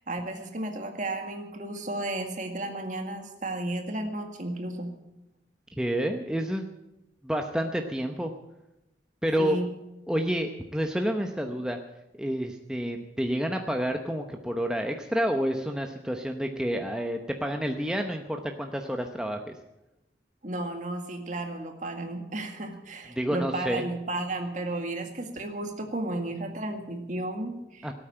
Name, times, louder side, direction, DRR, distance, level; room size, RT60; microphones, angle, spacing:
voice 1, 0.0-4.9 9.4-9.7 20.4-27.9, right 2 dB, 45° right, 4 dB, 2.0 m, -33 dB
voice 2, 5.8-6.7 7.2-8.3 9.2-9.6 10.1-11.8 12.2-19.5 23.1-23.8 27.8-27.9, equal, 5° right, 4 dB, 0.8 m, -29 dB
18.0 x 8.8 x 8.9 m, 0.94 s
head